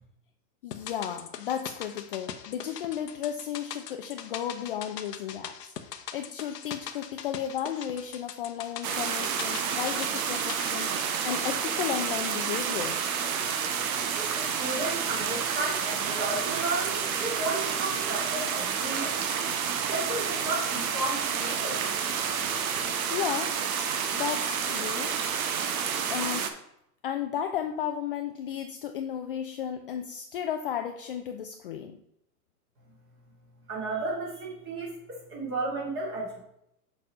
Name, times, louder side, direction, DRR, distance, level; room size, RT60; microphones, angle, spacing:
voice 1, 0.6-5.6 6.1-13.0 23.1-23.6 24.1-25.2 26.1-26.5 27.0-32.0, left 9 dB, 40° left, 6 dB, 0.4 m, -34 dB
sound 1, 0.7-13.1 13.3-13.4, left 8 dB, 80° left, 0.9 m, -42 dB
sound 2, 8.8-26.5, right 7 dB, 60° right, 1.0 m, -29 dB
voice 2, 14.2-19.2 19.8-21.8 33.7-36.4, right 2 dB, 25° right, -2 dB, 2.5 m, -33 dB
6.7 x 4.1 x 4.9 m, 0.79 s
hypercardioid pair, 125°, 48 cm